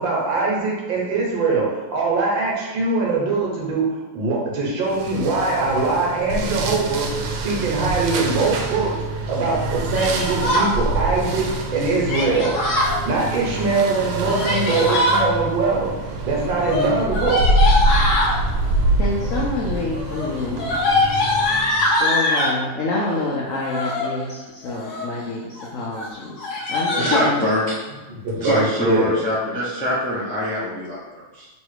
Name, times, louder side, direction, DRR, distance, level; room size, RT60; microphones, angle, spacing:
voice 1, 0.0-3.9 4.1-7.1 7.4-8.9 9.3-12.5 13.0-15.9 16.2-17.4 28.2-29.1, right 3 dB, 70° right, -3 dB, 1.7 m, -22 dB
sound 1, 4.9-22.0, right 1 dB, 90° right, 1.4 m, -25 dB
Yell, 9.9-10.7 12.1-13.0 14.1-15.2 16.6-18.4 19.2-19.6 19.9-22.6 23.5-24.1 24.6-25.2 25.6-25.7 25.9-26.1 26.4-27.3, left 1 dB, 60° left, 1.2 m, -22 dB
voice 2, 19.0-20.7 21.7-27.4, left 2 dB, 75° left, -4 dB, 0.7 m, -27 dB
voice 3, 26.6-27.7 28.4-31.5, left 1 dB, 10° left, -8 dB, 0.4 m, -24 dB
3.2 x 3.1 x 4.7 m, 1.2 s
omnidirectional pair, 2.2 m